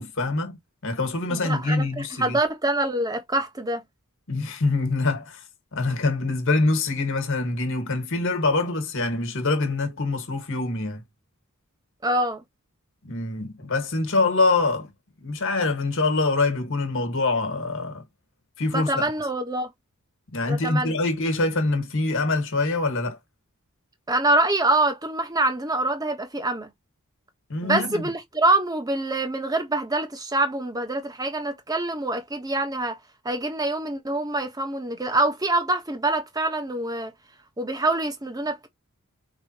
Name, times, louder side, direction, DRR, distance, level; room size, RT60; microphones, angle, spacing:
voice 1, 0.0-2.4 4.3-5.4 5.7-11.0 13.0-14.9 15.2-18.0 18.6-19.0 20.3-23.2 27.5-28.0, left 3 dB, 60° left, 1.6 m, -25 dB
voice 2, 1.3-3.8 12.0-12.4 18.7-19.7 20.5-21.0 24.1-26.7 27.6-33.0 33.2-37.1 37.6-38.7, right 2 dB, 15° right, 1.1 m, -25 dB
4.9 x 3.5 x 2.9 m
head